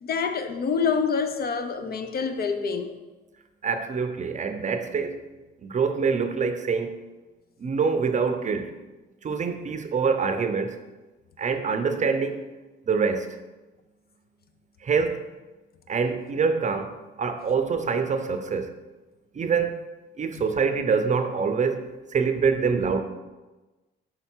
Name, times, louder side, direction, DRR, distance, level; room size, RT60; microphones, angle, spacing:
voice 1, 0.0-2.9 20.3-20.4, left 5 dB, 50° left, 8 dB, 0.6 m, -27 dB
voice 2, 3.6-5.2 5.6-7.0 7.6-8.7 9.2-10.8 11.4-12.4 12.9-13.3 14.8-15.3 15.9-16.9 17.2-18.7 19.3-19.8 20.2-23.0, right 5 dB, 40° right, 7 dB, 0.6 m, -25 dB
5.6 x 3.8 x 4.4 m, 1.2 s
cardioid pair, 90°, 20 cm